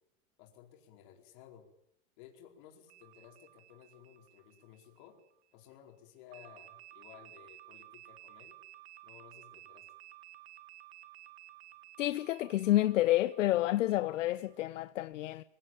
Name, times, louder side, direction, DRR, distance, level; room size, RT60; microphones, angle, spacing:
voice 1, 0.4-1.7 2.2-5.2 5.5-8.6 9.0-9.9, left 10 dB, 35° left, 4.6 m, -56 dB
sound 1, 2.9-5.4 6.3-14.6, right 15 dB, 50° right, 1.7 m, -55 dB
voice 2, 12.0-15.4, left 15 dB, 65° left, 0.9 m, -29 dB
24.0 x 17.0 x 9.1 m
supercardioid pair, 175°, 40 cm